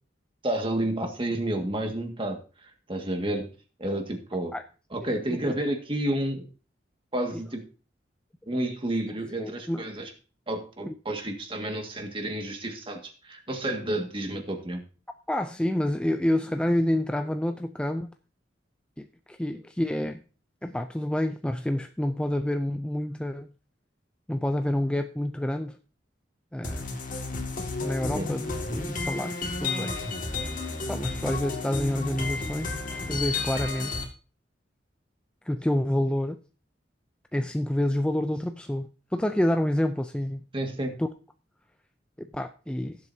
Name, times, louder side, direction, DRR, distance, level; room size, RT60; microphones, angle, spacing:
voice 1, 0.4-3.5 3.8-4.5 4.9-6.5 7.1-7.6 8.5-10.1 10.5-14.8 28.1-28.3 40.5-41.0, right 1 dB, 30° right, 1.8 m, -30 dB
voice 2, 5.0-5.4 9.4-9.8 10.9-11.0 15.3-18.1 19.0-20.2 20.6-23.5 24.3-25.8 26.5-26.9 27.8-29.9 30.9-33.9 35.5-36.4 37.3-40.4 41.0-41.1 42.2-43.0, left 1 dB, 5° left, 0.4 m, -28 dB
sound 1, 26.6-34.0, left 3 dB, 45° left, 2.0 m, -32 dB
17.5 x 7.7 x 2.7 m
head